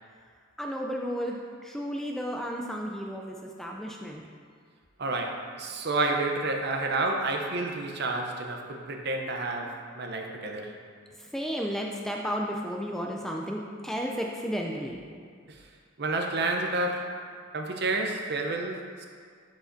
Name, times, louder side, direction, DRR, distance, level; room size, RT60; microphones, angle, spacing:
voice 1, 0.6-4.2 11.2-15.0, equal, ahead, 0 dB, 0.3 m, -33 dB
voice 2, 5.0-10.7 15.5-15.6 16.0-17.1 17.5-19.1, right 2 dB, 55° right, 3 dB, 0.6 m, -30 dB
11.0 x 4.9 x 2.6 m, 2.1 s
head